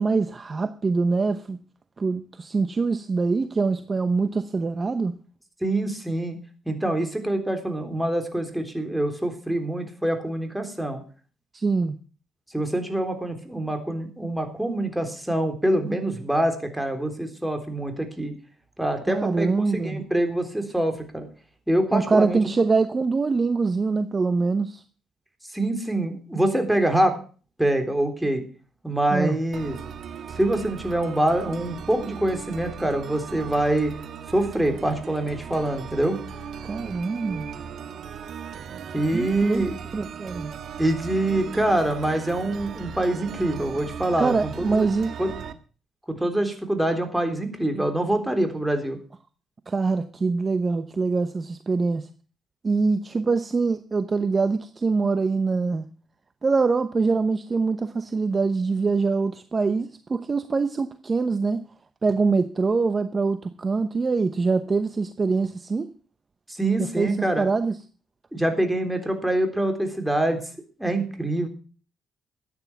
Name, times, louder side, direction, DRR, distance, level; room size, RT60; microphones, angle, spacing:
voice 1, 0.0-1.6 2.0-5.2 11.5-12.0 19.1-20.0 21.9-24.8 29.1-29.4 36.7-37.5 39.1-39.6 39.9-40.5 44.2-45.1 49.7-52.1 52.6-55.8 56.4-61.6 62.0-65.9 66.8-67.8, right 4 dB, 30° right, 0.9 m, -24 dB
voice 2, 5.6-6.4 6.7-11.0 12.5-18.3 18.8-21.3 21.7-22.4 25.5-27.2 27.6-28.4 28.8-29.7 30.4-33.9 34.3-36.2 38.9-39.8 40.8-44.9 45.2-45.3 46.1-49.0 66.5-67.5 68.3-70.4 70.8-71.5, right 1 dB, 5° right, 3.6 m, -25 dB
sound 1, 29.5-45.5, right 7 dB, 65° right, 1.5 m, -37 dB
13.5 x 9.6 x 6.0 m
cardioid pair, 90°, 0 cm